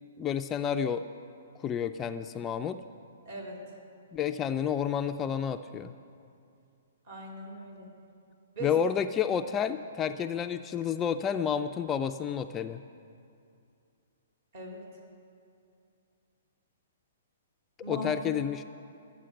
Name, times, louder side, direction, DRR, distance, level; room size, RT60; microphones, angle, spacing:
voice 1, 0.2-1.1 1.6-2.8 4.1-5.9 8.6-12.8 17.9-18.6, left 8 dB, 20° left, 7 dB, 0.3 m, -30 dB
voice 2, 3.2-3.6 7.1-7.9 8.5-8.8 14.5-14.8 17.8-18.1, right 1 dB, 50° right, -1 dB, 3.4 m, -39 dB
12.5 x 8.4 x 7.7 m, 2.5 s
hypercardioid pair, 150°, 0 cm